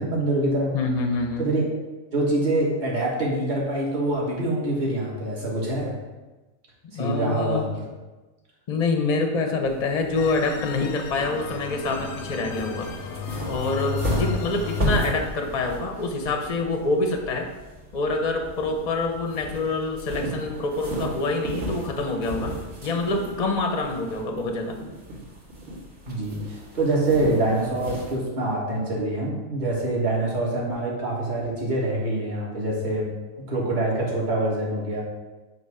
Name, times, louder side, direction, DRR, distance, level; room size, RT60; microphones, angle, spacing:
voice 1, 0.0-0.7 1.4-1.7 2.1-5.9 6.9-7.6 26.1-33.1 33.5-35.0, right 2 dB, 35° right, -4 dB, 1.5 m, -25 dB
voice 2, 0.7-1.5 6.9-7.7 8.7-12.9 13.5-17.5 17.9-22.5 22.8-24.8, left 3 dB, 45° left, 4 dB, 0.6 m, -26 dB
sound 1, 9.6-28.1, right 1 dB, 75° right, 2.1 m, -34 dB
sound 2, 10.2-15.4, left 8 dB, 85° left, 1.0 m, -34 dB
7.9 x 2.8 x 4.7 m, 1.2 s
omnidirectional pair, 1.4 m